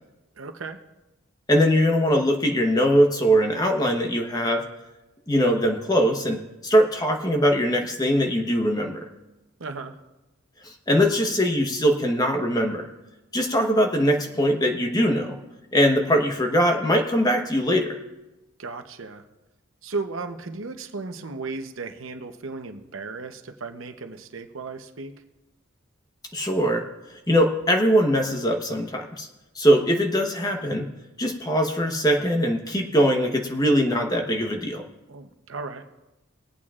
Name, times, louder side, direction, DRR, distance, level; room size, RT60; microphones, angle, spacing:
voice 1, 0.4-0.8 9.6-10.0 18.6-19.2 19.8-25.1 35.1-35.8, right 3 dB, 75° right, 7 dB, 0.8 m, -35 dB
voice 2, 1.5-4.6 5.3-9.1 10.6-12.9 13.3-15.4 15.7-17.9 26.3-26.8 27.3-29.3 29.5-30.9 31.2-34.8, equal, 20° left, 3 dB, 1.0 m, -21 dB
21.0 x 8.6 x 2.4 m, 1.0 s
head